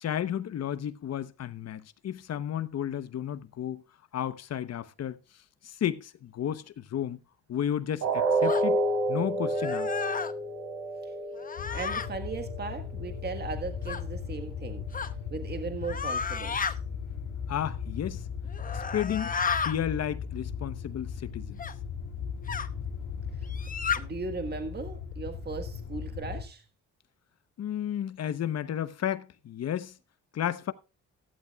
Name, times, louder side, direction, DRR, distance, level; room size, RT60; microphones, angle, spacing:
voice 1, 0.0-3.8 4.1-5.2 5.6-7.2 7.5-8.8 9.1-9.9 17.5-18.2 18.7-21.6 27.6-30.0 30.3-30.7, left 10 dB, 55° left, 1.0 m, -32 dB
sound 1, 8.0-14.0 14.4-14.6 15.0-15.1, right 2 dB, 70° right, 4.1 m, -30 dB
sound 2, 8.5-8.7 9.5-10.3 11.4-12.1 13.9-14.0 14.9-15.1 15.8-16.7 18.5-19.8 21.6-21.7 22.5-22.7 23.5-24.0, left 6 dB, 30° left, 0.9 m, -32 dB
sound 3, 11.6-26.4, left 6 dB, 80° left, 2.0 m, -37 dB
voice 2, 11.7-14.9 15.3-16.7 23.4-23.5 24.0-26.6, right 4 dB, 35° right, 1.6 m, -37 dB
15.0 x 12.0 x 2.4 m
cardioid pair, 90°, 30 cm